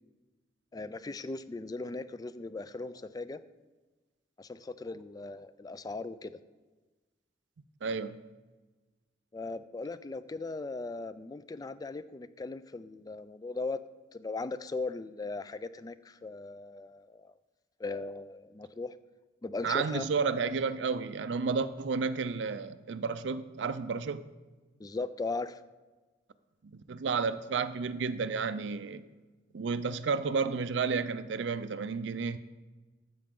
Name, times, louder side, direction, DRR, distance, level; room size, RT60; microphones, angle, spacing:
voice 1, 0.7-3.4 4.4-6.4 9.3-13.8 14.1-17.3 17.8-18.9 19.4-20.1 24.8-25.6, left 3 dB, 20° left, 0.3 m, -38 dB
voice 2, 7.8-8.2 19.6-24.3 26.6-29.0 29.5-32.4, right 5 dB, 70° right, 0.4 m, -31 dB
13.5 x 7.7 x 3.7 m
head